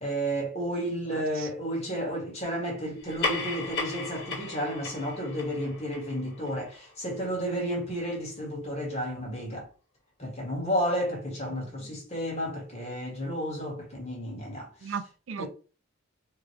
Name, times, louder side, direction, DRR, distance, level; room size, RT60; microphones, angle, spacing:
voice 1, 0.0-9.7 10.2-14.9 15.4-15.5, equal, 30° left, 1.8 m, -32 dB
voice 2, 1.1-1.5 11.5-11.9 14.8-15.5, right 6 dB, 65° right, 0.4 m, -38 dB
sound 1, 3.0-7.8, left 4 dB, 55° left, 1.4 m, -36 dB
3.9 x 3.1 x 3.2 m
head